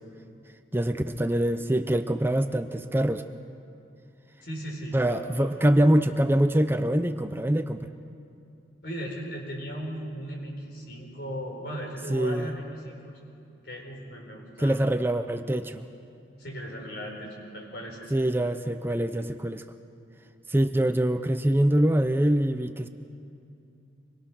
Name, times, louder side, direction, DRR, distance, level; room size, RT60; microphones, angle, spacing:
voice 1, 0.7-3.2 4.9-7.9 12.1-12.5 14.6-15.9 18.1-19.6 20.5-22.9, right 1 dB, 15° right, 8 dB, 0.6 m, -24 dB
voice 2, 4.4-5.6 8.8-13.1 13.6-14.9 16.4-18.1, equal, 65° left, 0 dB, 4.8 m, -37 dB
25.0 x 22.0 x 6.3 m, 2.6 s
head